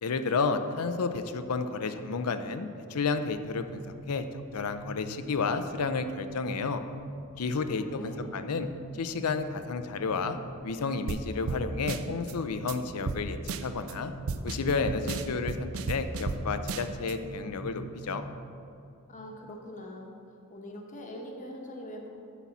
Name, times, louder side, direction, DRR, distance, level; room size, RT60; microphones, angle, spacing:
voice 1, 0.0-3.8 4.1-6.8 7.4-8.7 8.9-10.4 10.6-14.1 14.4-18.2, left 4 dB, 80° left, 9 dB, 0.6 m, -31 dB
sound 1, 3.0-18.5, right 1 dB, 15° left, 1.0 m, -45 dB
voice 2, 7.6-8.3 19.1-20.2 20.5-22.1, equal, 35° left, 1 dB, 1.1 m, -43 dB
sound 2, 11.1-11.2 11.5-11.6 11.9-12.3 12.7-12.8 13.1-13.2 13.5-13.9 14.3-16.4 16.7-17.1, right 4 dB, 65° right, 0.5 m, -33 dB
11.5 x 4.1 x 7.2 m, 2.6 s
head